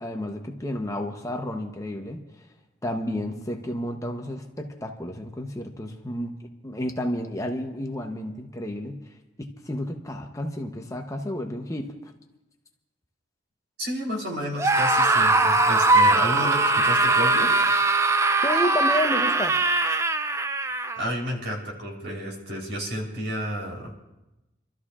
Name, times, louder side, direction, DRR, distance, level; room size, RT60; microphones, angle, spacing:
voice 1, 0.0-2.2 2.8-9.0 9.4-12.1 18.4-19.6, left 1 dB, 15° left, 3 dB, 0.8 m, -31 dB
voice 2, 13.8-17.5 21.0-23.9, equal, 65° right, -2 dB, 3.6 m, -31 dB
Screaming, 14.6-21.0, right 2 dB, 15° right, 0.4 m, -21 dB
29.5 x 13.0 x 2.4 m, 0.98 s
head